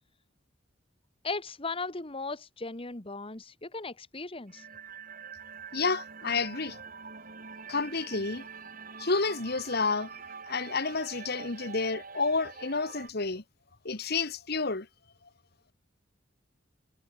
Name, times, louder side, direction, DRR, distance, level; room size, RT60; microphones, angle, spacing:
voice 1, 1.2-4.6, left 3 dB, 30° left, 1.6 m, -37 dB
sound 1, 4.5-13.1, right 5 dB, 45° right, 4.3 m, -45 dB
voice 2, 5.7-6.8 7.7-8.4 9.0-10.1 10.5-13.4 13.8-14.9, left 4 dB, 55° left, 1.7 m, -30 dB
head